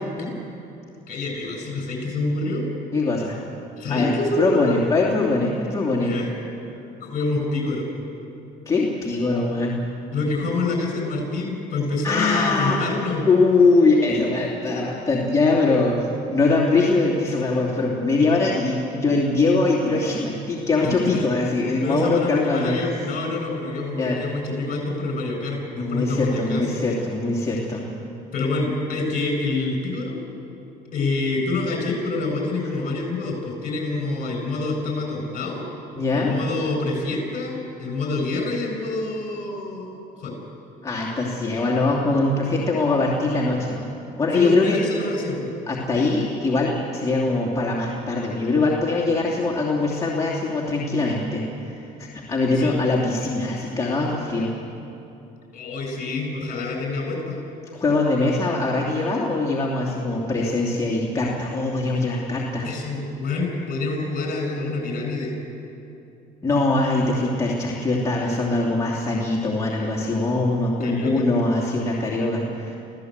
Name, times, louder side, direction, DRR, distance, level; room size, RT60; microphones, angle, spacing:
voice 1, 1.1-2.7 3.8-4.8 6.0-6.3 7.0-7.9 10.1-13.2 20.8-21.2 21.8-26.9 28.3-30.2 30.9-35.6 36.1-40.3 44.3-45.5 52.6-52.8 55.5-57.4 62.6-65.3 70.8-71.2, left 3 dB, 55° left, 2 dB, 8.0 m, -27 dB
voice 2, 2.9-3.4 3.9-6.1 8.7-9.7 12.0-12.8 13.3-22.8 24.0-24.2 25.8-27.8 35.9-36.3 40.8-43.9 44.2-44.8 45.7-54.5 57.7-62.7 66.4-72.8, left 3 dB, 20° left, -5 dB, 2.9 m, -22 dB
27.0 x 16.0 x 8.2 m, 2.8 s
cardioid pair, 110°, 17 cm